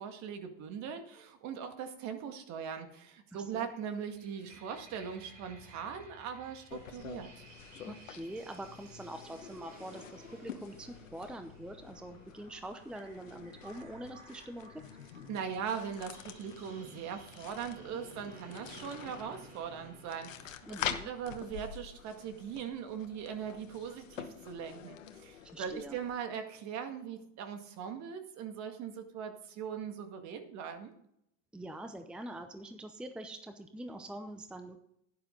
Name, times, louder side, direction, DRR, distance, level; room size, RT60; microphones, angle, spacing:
voice 1, 0.0-7.4 15.3-20.7 21.1-30.9, right 7 dB, 45° right, 7 dB, 1.9 m, -40 dB
voice 2, 3.3-3.7 7.9-14.8 20.7-21.1 25.4-26.0 31.5-34.8, right 1 dB, 5° right, 8 dB, 0.7 m, -44 dB
sound 1, 3.5-20.4, right 3 dB, 75° right, 5.1 m, -56 dB
sound 2, 6.7-26.2, left 9 dB, 90° left, 1.2 m, -47 dB
11.5 x 9.7 x 3.9 m, 0.76 s
hypercardioid pair, 105°, 38 cm